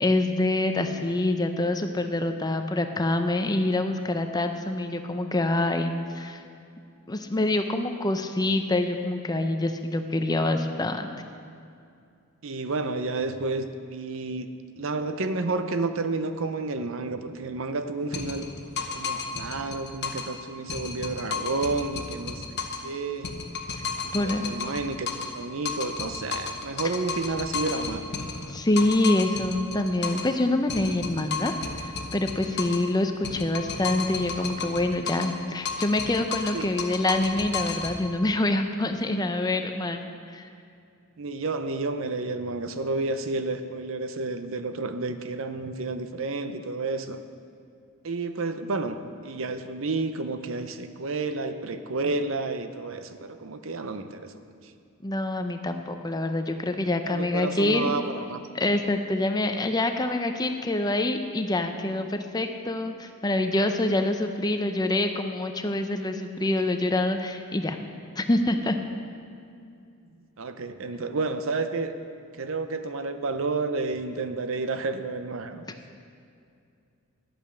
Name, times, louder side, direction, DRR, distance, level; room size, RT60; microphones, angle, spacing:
voice 1, 0.0-6.4 7.1-11.1 23.7-23.8 24.1-24.5 28.5-40.0 40.3-40.5 55.0-57.9 58.5-67.8 68.2-68.8, left 2 dB, 20° left, 6 dB, 0.6 m, -26 dB
voice 2, 12.4-14.5 14.8-18.5 18.9-23.3 24.0-28.6 36.5-36.7 41.2-47.2 48.0-49.0 49.2-54.3 57.0-58.4 70.4-71.9 72.4-75.6, right 3 dB, 60° right, 9 dB, 0.6 m, -31 dB
sound 1, 18.1-20.4 20.7-22.9 23.2-25.4 25.6-30.4 30.7-32.9 33.2-35.4 35.6-38.0, left 5 dB, 50° left, 1.0 m, -33 dB
11.5 x 8.7 x 6.3 m, 2.4 s
head